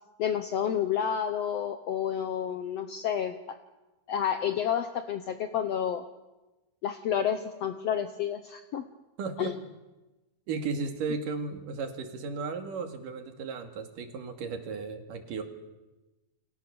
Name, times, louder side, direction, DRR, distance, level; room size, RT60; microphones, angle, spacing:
voice 1, 0.2-3.4 4.1-6.0 6.8-8.8 9.4-9.5, left 9 dB, 65° left, 9 dB, 1.8 m, -30 dB
voice 2, 9.2-9.5 10.5-15.4, right 4 dB, 85° right, 6 dB, 3.9 m, -35 dB
29.5 x 24.5 x 7.1 m, 1.1 s
omnidirectional pair, 3.7 m